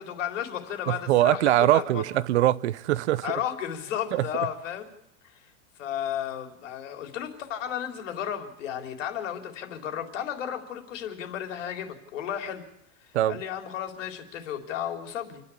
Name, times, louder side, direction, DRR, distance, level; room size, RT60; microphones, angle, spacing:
voice 1, 0.0-2.0 3.2-4.9 5.3-5.5 5.8-12.6 13.0-15.4, left 10 dB, 75° left, 3.8 m, -33 dB
voice 2, 0.9-3.3 4.1-4.2 13.1-13.4, right 14 dB, 60° right, 0.8 m, -22 dB
28.5 x 10.5 x 8.5 m
supercardioid pair, 175°, 38 cm